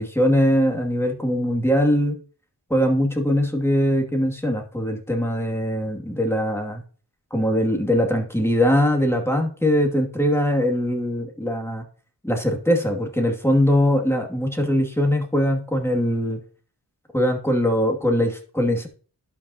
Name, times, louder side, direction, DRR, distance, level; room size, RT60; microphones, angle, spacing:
voice 1, 0.0-2.2 2.7-6.8 7.3-11.8 12.2-16.4 17.1-18.9, equal, 5° left, 2 dB, 2.3 m, -21 dB
11.5 x 5.5 x 2.9 m, 0.41 s
cardioid pair, 40°, 42 cm